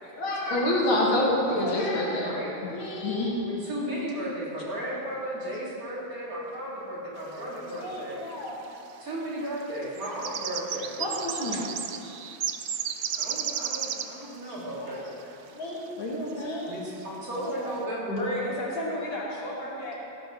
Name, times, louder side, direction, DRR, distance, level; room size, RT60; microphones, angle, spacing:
voice 1, 0.1-2.4 2.6-3.4 7.7-8.6 11.0-11.7 14.4-15.0 15.5-16.8 17.4-17.8, left 1 dB, 80° left, -3 dB, 2.7 m, -29 dB
voice 2, 2.1-2.5 3.4-8.2 9.0-11.1 13.1-15.1 16.7-18.4, right 1 dB, 45° right, -6 dB, 3.1 m, -35 dB
sound 1, 7.8-7.9 8.1-8.7 9.6-14.2 15.1-15.2 15.8-15.9 16.3-16.6 17.0-17.1 17.3-17.6, right 9 dB, 80° right, 0.7 m, -33 dB
voice 3, 18.1-19.9, left 1 dB, 55° left, -6 dB, 3.3 m, -32 dB
16.0 x 12.0 x 3.9 m, 3.0 s
omnidirectional pair, 2.2 m